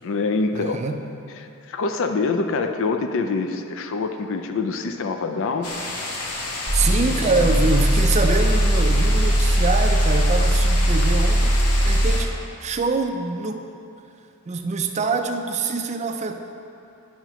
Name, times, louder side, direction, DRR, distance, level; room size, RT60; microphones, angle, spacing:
voice 1, 0.0-0.8 1.7-5.7, left 4 dB, 60° left, 6 dB, 0.4 m, -25 dB
voice 2, 0.5-1.0 6.7-13.7 14.5-16.3, right 3 dB, 30° right, 5 dB, 0.4 m, -25 dB
sound 1, 5.6-12.2, left 2 dB, 90° left, 0.9 m, -30 dB
sound 2, 6.7-12.3, right 1 dB, 25° left, 1.2 m, -19 dB
10.5 x 5.7 x 3.0 m, 2.7 s
head